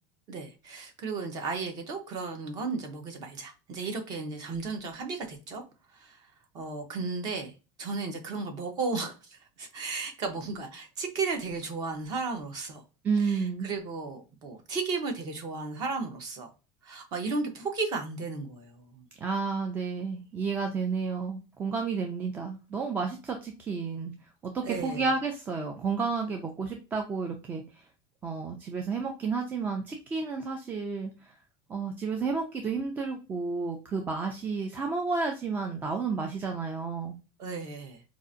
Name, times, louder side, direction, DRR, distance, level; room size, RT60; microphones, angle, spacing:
voice 1, 0.3-5.6 5.9-6.3 6.5-12.8 13.2-16.5 16.8-19.1 24.6-25.1 37.4-38.0, right 4 dB, 35° right, 5 dB, 0.8 m, -34 dB
voice 2, 13.0-13.7 19.2-24.1 24.4-27.6 28.2-31.1 31.7-37.2, right 4 dB, 15° right, 3 dB, 0.3 m, -31 dB
4.7 x 2.4 x 2.6 m, 0.31 s
cardioid pair, 175°, 12 cm